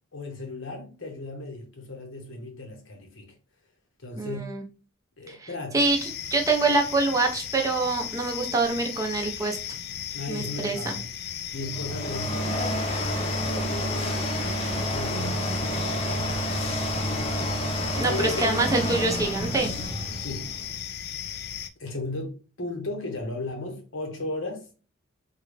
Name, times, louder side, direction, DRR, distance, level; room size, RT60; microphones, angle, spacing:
voice 1, 0.1-3.3 4.0-4.4 5.2-5.8 10.1-11.1 11.5-14.3 14.7-17.5 17.8-18.6 20.2-20.5 21.8-24.7, left 2 dB, 75° left, 1.0 m, -36 dB
voice 2, 4.2-4.6 5.3-5.5 5.7-6.0 6.3-9.6 10.3-11.0 18.0-19.7, right 3 dB, 15° right, 0.5 m, -25 dB
sound 1, 5.8-21.7, left 10 dB, 50° left, 0.3 m, -36 dB
sound 2, 11.6-20.8, equal, 30° left, 0.7 m, -29 dB
3.7 x 2.3 x 3.2 m
head